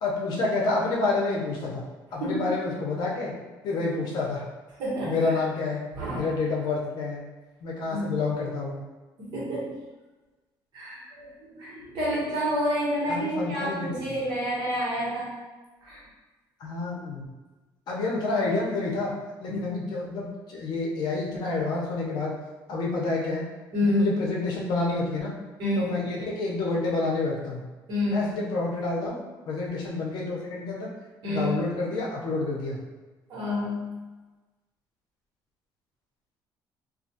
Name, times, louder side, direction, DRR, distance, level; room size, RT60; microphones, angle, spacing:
voice 1, 0.0-1.8 2.1-3.3 3.6-4.4 5.0-5.8 6.1-7.2 7.6-8.8 13.1-13.9 16.6-17.2 17.9-19.1 19.4-22.3 22.7-23.5 23.8-25.3 25.8-27.6 28.1-30.9 31.2-32.8, left 3 dB, 60° left, -3 dB, 0.6 m, -28 dB
voice 2, 2.1-2.6 4.8-5.2 5.9-6.2 7.9-8.2 9.2-9.8 10.7-15.4 15.8-16.0 19.5-19.7 23.7-24.1 25.6-25.9 27.9-28.3 31.2-31.5 33.3-34.0, equal, 60° right, -7 dB, 1.1 m, -28 dB
2.4 x 2.3 x 2.7 m, 1.2 s
cardioid pair, 145°, 8 cm